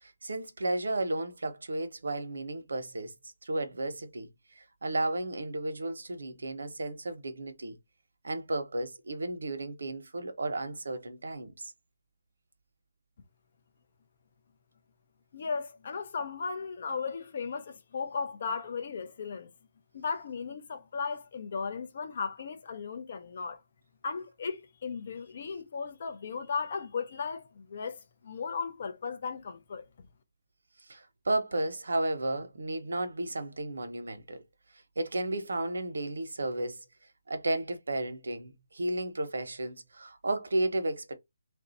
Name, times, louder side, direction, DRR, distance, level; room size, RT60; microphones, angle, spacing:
voice 1, 0.0-3.1 3.4-4.3 4.6-7.8 8.2-11.7 30.9-34.4 35.0-36.8 37.3-41.1, right 2 dB, 90° right, 1.0 m, -33 dB
voice 2, 15.3-19.5 19.9-23.6 24.0-29.8, left 5 dB, 30° left, 0.6 m, -36 dB
3.4 x 2.6 x 4.1 m
hypercardioid pair, 180°, 0 cm